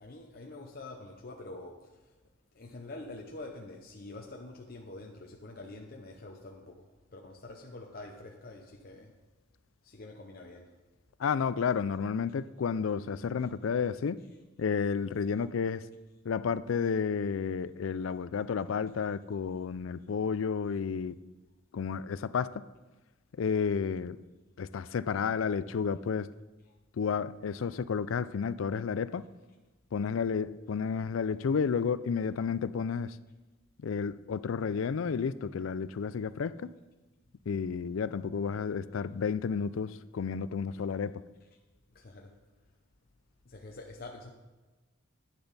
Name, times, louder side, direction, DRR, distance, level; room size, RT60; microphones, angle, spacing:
voice 1, 0.0-2.0 2.5-9.1 9.8-10.7 13.4-13.5 41.9-42.3 43.5-44.3, left 2 dB, 50° left, 1 dB, 0.7 m, -46 dB
voice 2, 11.2-14.2 14.6-15.8 16.3-21.2 21.7-22.6 23.4-24.2 24.6-26.3 27.0-29.2 29.9-33.2 33.8-36.7 37.5-41.2, left 6 dB, 80° left, 16 dB, 0.4 m, -31 dB
10.5 x 9.9 x 4.1 m, 1.2 s
head